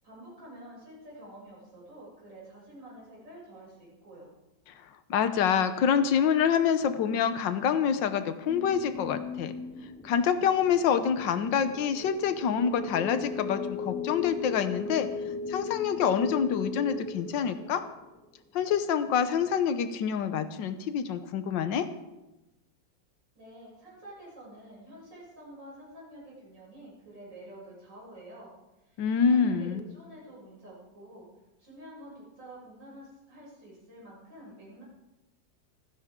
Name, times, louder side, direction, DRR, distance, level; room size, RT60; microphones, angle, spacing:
voice 1, 0.0-4.3 23.4-28.5 28.8-31.3 31.6-34.8, right 1 dB, 85° right, -6 dB, 7.9 m, -49 dB
voice 2, 5.1-9.5 10.0-15.1 15.5-17.8 18.5-21.9 29.0-29.8, left 7 dB, 85° left, 10 dB, 1.6 m, -26 dB
sound 1, 8.5-18.2, left 4 dB, 10° left, 0.6 m, -38 dB
27.5 x 10.0 x 3.7 m, 1.0 s
omnidirectional pair, 1.9 m